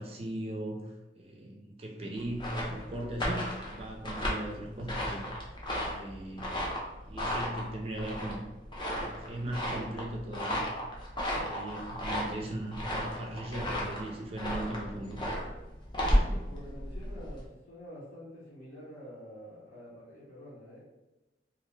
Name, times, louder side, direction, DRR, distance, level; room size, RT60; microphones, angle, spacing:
voice 1, 0.0-5.2 5.8-6.5 7.1-8.4 9.0-10.6 11.4-15.2 16.3-16.4, right 1 dB, 35° right, 1 dB, 0.4 m, -38 dB
sound 1, 2.2-17.4, equal, 25° left, 0.5 m, -34 dB
voice 2, 16.2-20.8, equal, 70° left, -10 dB, 0.9 m, -48 dB
2.5 x 2.1 x 3.1 m, 1.0 s
head